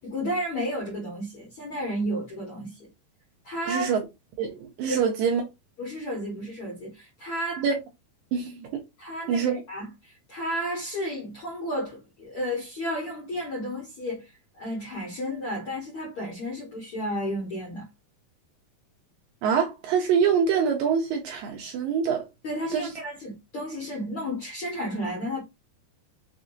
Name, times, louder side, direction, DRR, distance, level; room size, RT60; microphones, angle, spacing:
voice 1, 0.0-2.9 3.4-3.9 4.9-5.0 5.8-7.6 9.0-14.3 14.6-17.9 22.4-25.4, equal, 75° left, 1.2 m, -32 dB
voice 2, 3.7-4.0 4.4-5.4 7.6-7.8 8.3-8.8 9.3-9.6 19.4-22.2 22.7-22.9, right 6 dB, 75° right, 2.2 m, -25 dB
6.2 x 2.7 x 2.5 m
omnidirectional pair, 4.6 m